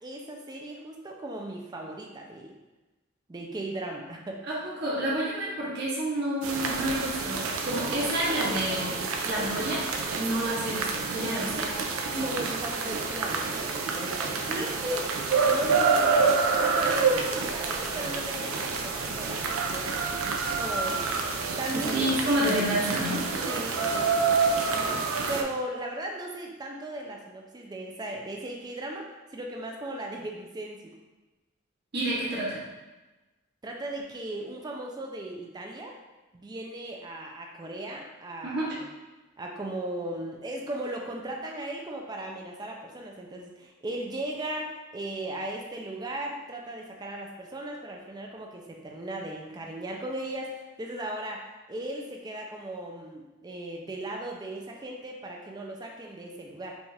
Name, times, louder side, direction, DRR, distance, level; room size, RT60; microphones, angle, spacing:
voice 1, 0.0-2.5 3.3-4.4 12.1-15.1 15.5-19.9 20.6-21.1 21.6-22.1 23.5-23.8 24.7-30.9 33.6-36.0 36.3-38.9 39.4-56.8, right 1 dB, 20° right, 0 dB, 0.4 m, -37 dB
voice 2, 4.5-8.9 9.2-9.8 10.2-11.7 21.7-23.2 31.9-32.6 38.4-38.7, right 1 dB, 50° right, -7 dB, 0.9 m, -29 dB
sound 1, 6.4-25.4, right 4 dB, 90° right, 0.5 m, -28 dB
5.1 x 2.4 x 3.3 m, 1.1 s
head